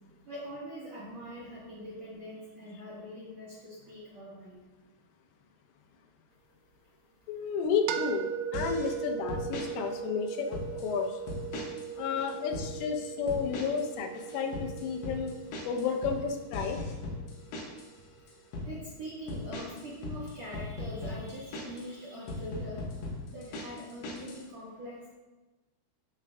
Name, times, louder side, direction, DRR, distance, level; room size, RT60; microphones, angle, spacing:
voice 1, 0.1-4.6 18.6-22.8 23.3-25.0, equal, 60° right, -8 dB, 1.8 m, -43 dB
voice 2, 7.3-11.1 12.0-15.3 15.7-16.8, left 6 dB, 90° left, 4 dB, 3.4 m, -32 dB
sound 1, 7.9-17.7, right 7 dB, 85° right, 3.0 m, -39 dB
sound 2, 8.5-9.0 9.3-9.7 10.3-10.9 11.3-11.9 12.2-12.7 13.3-13.9 14.1-17.9 18.3-18.7 19.3-21.9 22.3-24.4, left 2 dB, 65° left, 3.0 m, -38 dB
14.0 x 6.0 x 2.3 m, 1.1 s
omnidirectional pair, 5.6 m